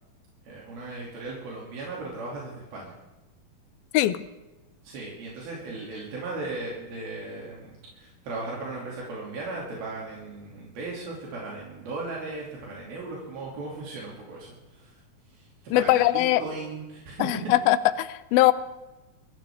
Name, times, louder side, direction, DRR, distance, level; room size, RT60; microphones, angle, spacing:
voice 1, 0.5-2.9 4.8-15.0 15.3-15.5 15.7-17.5, right 3 dB, 90° right, -4 dB, 4.8 m, -37 dB
voice 2, 15.7-16.4 17.2-18.5, left 15 dB, 85° left, 14 dB, 2.5 m, -21 dB
22.5 x 15.5 x 3.7 m, 1.0 s
omnidirectional pair, 4.2 m